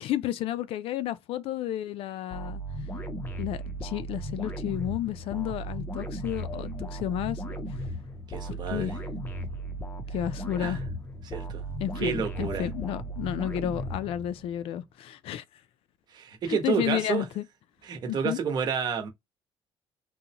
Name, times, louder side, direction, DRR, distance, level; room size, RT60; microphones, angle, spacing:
voice 1, 0.0-2.6 3.4-7.4 8.4-8.9 10.1-10.8 11.8-15.4 16.5-17.4 18.1-18.4, left 12 dB, 80° left, 0.4 m, -32 dB
sound 1, 2.3-14.6, right 1 dB, 20° left, 0.5 m, -36 dB
voice 2, 8.3-8.9 10.6-10.8 11.2-11.6 12.0-12.7 16.1-17.2 17.9-19.1, right 7 dB, 50° right, 1.0 m, -30 dB
3.8 x 2.1 x 2.8 m
cardioid pair, 160°, 9 cm